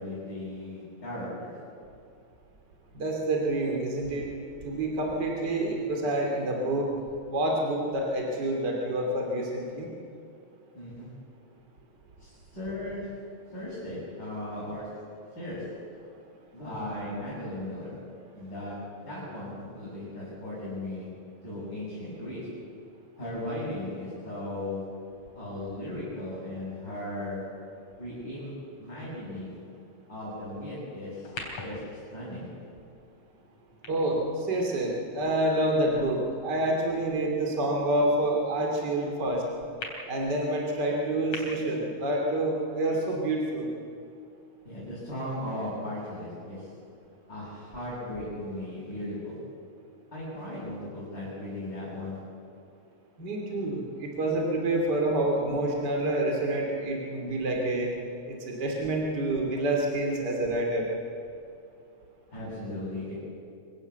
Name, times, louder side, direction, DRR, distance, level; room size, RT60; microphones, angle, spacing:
voice 1, 0.0-1.5 10.7-11.1 12.2-13.2 13.5-15.0 15.3-15.8 16.5-18.0 18.3-21.1 21.4-22.5 23.2-25.0 25.3-27.5 28.0-28.5 28.8-29.6 30.1-31.3 31.6-32.5 44.6-46.7 47.3-49.4 50.1-52.3 62.3-63.1, left 1 dB, 35° left, -10 dB, 8.5 m, -37 dB
voice 2, 2.9-4.3 4.6-6.9 7.3-9.9 33.9-39.4 40.1-43.7 53.2-57.9 58.3-60.9, right 1 dB, 35° right, 0 dB, 3.3 m, -28 dB
sound 1, 31.2-35.7 36.3-36.4 39.8-39.9 41.3-41.4, left 3 dB, 80° left, 4.7 m, -43 dB
25.5 x 16.0 x 8.3 m, 2.5 s
omnidirectional pair, 3.3 m